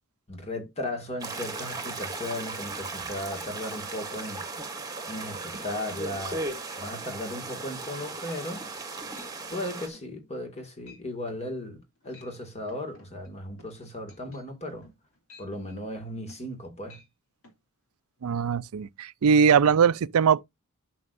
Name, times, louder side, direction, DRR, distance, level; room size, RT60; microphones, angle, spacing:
voice 1, 0.3-4.4 4.8-6.5 6.8-8.6 9.5-14.9 15.4-17.0, left 1 dB, 30° left, 2.1 m, -36 dB
sound 1, 1.2-9.9, right 3 dB, 15° right, 1.6 m, -36 dB
sound 2, 8.3-8.7 9.2-9.4 9.8-10.1 10.4-10.6 10.9-11.0 11.3-11.5 12.0-12.4 12.7-16.6 16.9-17.1 17.4-17.6, left 2 dB, 65° left, 2.8 m, -54 dB
voice 2, 18.2-20.4, right 6 dB, 75° right, 0.4 m, -21 dB
11.0 x 6.4 x 2.6 m
head